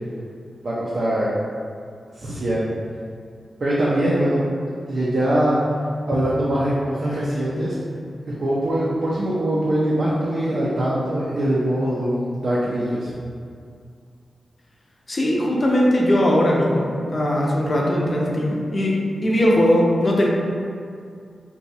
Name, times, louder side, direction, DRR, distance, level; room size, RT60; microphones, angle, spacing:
voice 1, 0.6-1.3 2.2-2.7 3.6-4.4 4.9-5.6 6.1-7.8 8.3-13.1, right 1 dB, 55° right, -7 dB, 0.5 m, -22 dB
voice 2, 15.1-20.3, left 1 dB, 35° left, -3 dB, 0.5 m, -19 dB
2.6 x 2.2 x 4.0 m, 2.3 s
wide cardioid pair, 120°, 0 cm